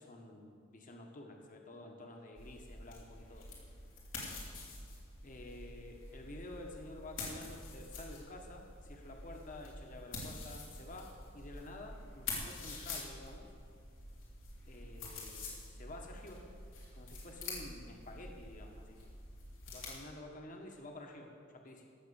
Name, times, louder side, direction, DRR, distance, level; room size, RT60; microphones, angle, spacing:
voice 1, 0.0-3.5 5.2-13.4 14.7-16.4 16.9-19.0 19.7-21.8, left 1 dB, 40° left, 2 dB, 1.4 m, -50 dB
sound 1, 2.4-19.9, left 3 dB, 90° left, 3.4 m, -47 dB
16.5 x 6.7 x 7.0 m, 2.2 s
head